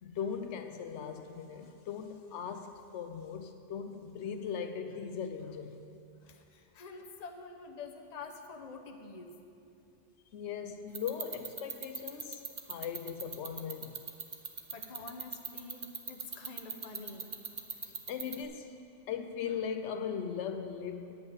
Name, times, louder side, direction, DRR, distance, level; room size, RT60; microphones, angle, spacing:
voice 1, 0.0-5.9 10.3-14.0 17.8-18.8 19.1-21.1, left 7 dB, 80° left, 7 dB, 0.9 m, -39 dB
voice 2, 6.2-9.4 14.7-17.3, left 4 dB, 40° left, 4 dB, 0.8 m, -47 dB
sound 1, 10.9-18.4, right 5 dB, 35° right, 0.5 m, -38 dB
9.3 x 5.5 x 8.2 m, 2.6 s
omnidirectional pair, 1.2 m